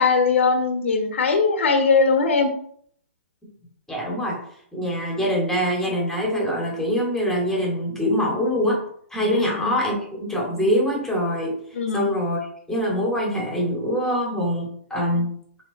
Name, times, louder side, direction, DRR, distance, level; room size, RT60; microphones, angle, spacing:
voice 1, 0.0-2.5 9.3-9.8 11.7-12.1, left 4 dB, 75° left, 5 dB, 1.4 m, -20 dB
voice 2, 3.9-4.4 4.7-8.8 9.1-11.6 11.9-15.3, equal, 5° left, -2 dB, 2.4 m, -24 dB
9.0 x 3.5 x 4.2 m, 0.62 s
hypercardioid pair, 135°, 7 cm